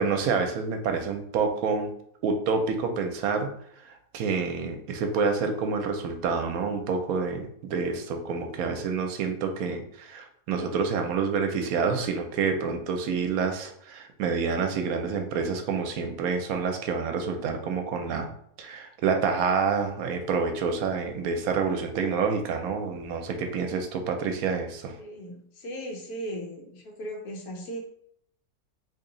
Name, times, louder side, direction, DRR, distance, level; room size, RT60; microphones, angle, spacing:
voice 1, 0.0-1.9 2.2-3.5 3.8-18.3 18.6-24.9, right 5 dB, 80° right, 5 dB, 1.0 m, -28 dB
voice 2, 25.0-27.8, equal, 85° left, 0 dB, 1.3 m, -37 dB
3.0 x 2.7 x 3.8 m, 0.69 s
omnidirectional pair, 1.5 m